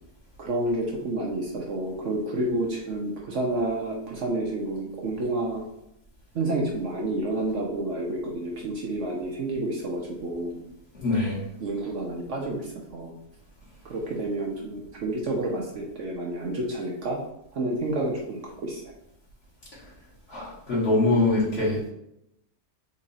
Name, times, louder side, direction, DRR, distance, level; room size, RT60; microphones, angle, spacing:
voice 1, 0.4-5.6 6.3-10.6 11.6-13.2 13.8-17.2 17.5-18.9, right 2 dB, 60° right, -1 dB, 1.0 m, -29 dB
voice 2, 11.0-11.5 20.3-21.9, left 2 dB, 45° left, -7 dB, 1.9 m, -23 dB
4.1 x 2.8 x 4.0 m, 0.79 s
omnidirectional pair, 1.6 m